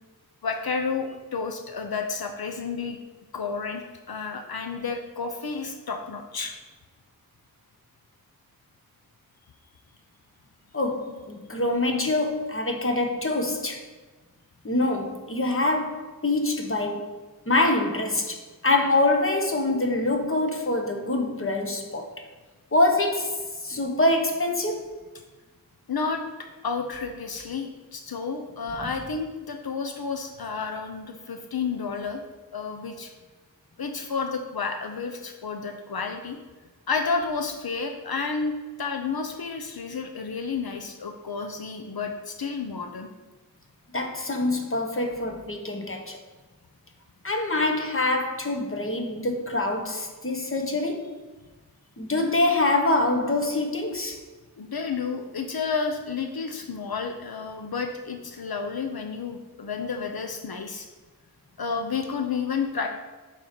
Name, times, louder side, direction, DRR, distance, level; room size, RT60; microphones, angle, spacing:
voice 1, 0.4-3.0 3.3-6.5 25.9-26.2 26.6-32.2 32.5-33.1 33.8-36.4 36.9-43.1 54.5-60.9 61.6-62.9, left 5 dB, 85° left, 0.7 m, -31 dB
voice 2, 10.7-13.8 14.6-17.1 17.5-22.1 22.7-24.9 43.9-46.2 47.2-51.1 52.0-54.2, left 2 dB, 35° left, 1.1 m, -25 dB
7.0 x 4.5 x 5.2 m
wide cardioid pair, 45°, 36 cm